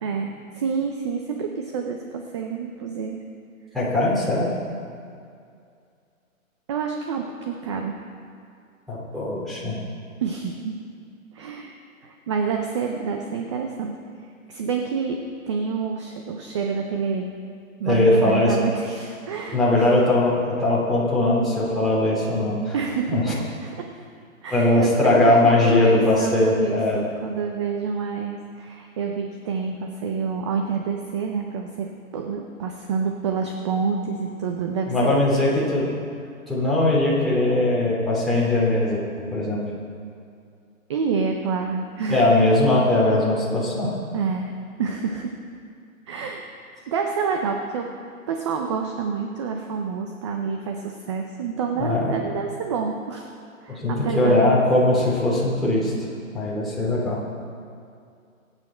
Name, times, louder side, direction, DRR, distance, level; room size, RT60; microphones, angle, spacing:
voice 1, 0.0-3.2 6.7-8.0 10.2-10.8 11.3-11.7 12.0-14.0 14.5-17.3 17.8-19.9 22.7-23.9 24.4-34.9 35.3-35.4 40.9-42.3 44.1-44.5 44.8-45.4 46.1-46.5 46.9-47.9 48.3-53.3 53.6-54.4, right 5 dB, 20° right, 3 dB, 0.6 m, -28 dB
voice 2, 3.7-4.5 8.9-9.8 17.8-18.6 19.5-22.7 23.1-23.3 24.5-27.0 34.9-35.9 36.5-39.0 39.3-39.6 42.1-43.9 51.8-52.2 53.7-55.9 56.3-57.2, left 2 dB, ahead, -8 dB, 2.8 m, -20 dB
23.5 x 9.0 x 4.4 m, 2.4 s
hypercardioid pair, 150°, 42 cm